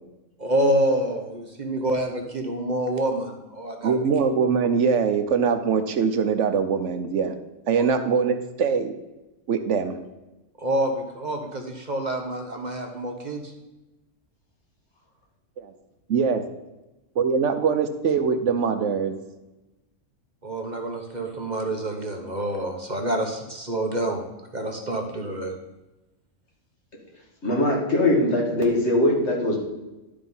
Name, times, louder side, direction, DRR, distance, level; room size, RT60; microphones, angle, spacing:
voice 1, 0.4-4.0 10.6-13.5 20.4-24.2 24.5-25.5, right 1 dB, 35° right, 3 dB, 1.1 m, -27 dB
voice 2, 3.8-7.4 7.7-8.9 9.5-10.0 15.6-15.7 16.1-16.4 17.2-19.1, right 6 dB, 70° right, 9 dB, 1.0 m, -22 dB
voice 3, 27.4-29.6, left 1 dB, 60° left, -1 dB, 2.3 m, -21 dB
11.0 x 5.1 x 5.4 m, 1.0 s
omnidirectional pair, 1.3 m